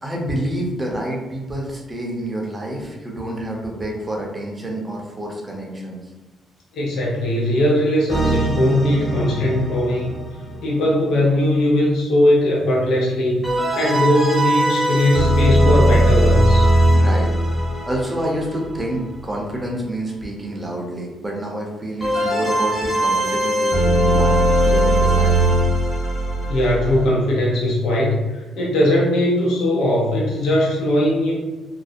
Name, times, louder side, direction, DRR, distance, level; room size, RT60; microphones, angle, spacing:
voice 1, 0.0-6.1 16.9-17.3 17.8-24.4 24.6-25.6, right 1 dB, 20° right, -1 dB, 0.6 m, -28 dB
voice 2, 6.7-10.1 10.6-13.4 13.7-16.7 26.5-31.3, left 1 dB, 75° left, -4 dB, 0.6 m, -19 dB
sound 1, 8.1-10.8 13.4-19.1 22.0-27.1, right 1 dB, 15° left, 1.0 m, -19 dB
2.5 x 2.1 x 2.4 m, 1.2 s
cardioid pair, 90°, 0 cm